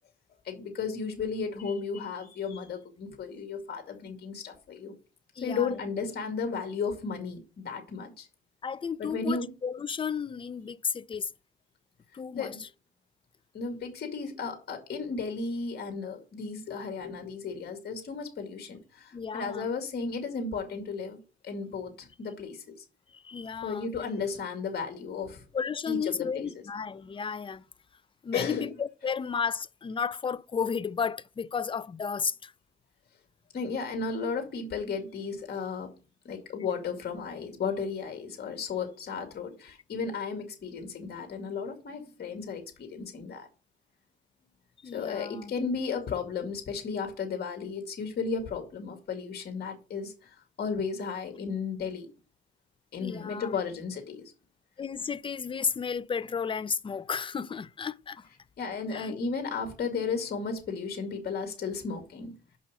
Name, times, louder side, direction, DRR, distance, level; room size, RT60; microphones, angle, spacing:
voice 1, 0.4-4.9 5.4-8.3 9.0-9.5 12.3-12.6 13.5-22.8 23.6-25.4 25.9-26.5 28.3-28.7 33.5-35.9 36.2-43.5 44.9-52.1 52.9-54.2 58.6-62.3, left 5 dB, 55° left, 2.2 m, -34 dB
voice 2, 5.4-5.8 8.6-11.3 12.1-12.7 19.1-19.7 23.1-23.9 25.5-27.6 28.2-32.5 44.8-45.5 53.0-53.5 54.8-58.3 58.9-59.2, left 6 dB, 25° left, 0.5 m, -33 dB
6.2 x 5.6 x 6.1 m
cardioid pair, 90°, 20 cm